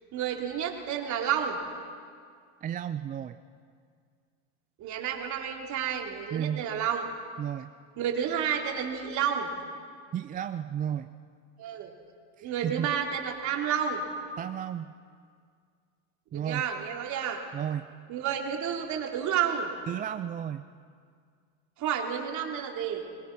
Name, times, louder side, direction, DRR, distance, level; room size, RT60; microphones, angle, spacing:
voice 1, 0.1-1.6 4.8-7.0 8.0-9.5 11.6-11.9 12.4-14.0 16.3-17.4 18.1-19.7 21.8-23.0, right 8 dB, 45° right, 1 dB, 3.5 m, -30 dB
voice 2, 2.6-3.4 6.3-6.7 7.4-7.7 10.1-11.1 12.4-13.0 14.4-14.9 16.3-16.6 17.5-17.9 19.9-20.7, right 9 dB, 20° right, 9 dB, 0.4 m, -33 dB
24.5 x 21.0 x 6.2 m, 2.1 s
supercardioid pair, 115°, 39 cm